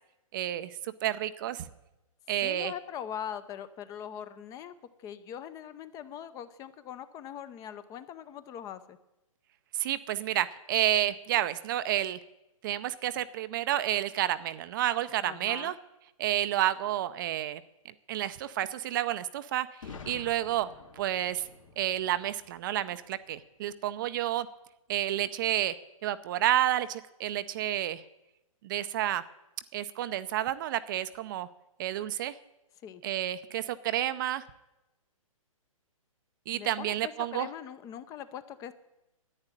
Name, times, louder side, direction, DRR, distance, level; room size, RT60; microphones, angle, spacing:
voice 1, 0.3-1.7 2.3-2.7 9.7-12.2 12.6-15.7 16.2-17.6 18.1-20.7 21.0-21.5 21.8-24.5 24.9-25.7 26.0-28.0 28.6-29.2 29.7-31.5 31.8-32.3 33.0-34.5 36.5-37.5, right 13 dB, 35° right, 13 dB, 0.6 m, -30 dB
voice 2, 2.4-4.7 5.0-9.0 15.2-15.8 32.8-33.0 36.5-38.7, left 9 dB, 20° left, 13 dB, 0.6 m, -41 dB
Boom, 19.8-23.6, left 5 dB, 65° left, 2.8 m, -49 dB
11.0 x 9.7 x 9.0 m, 0.95 s
hypercardioid pair, 135°, 18 cm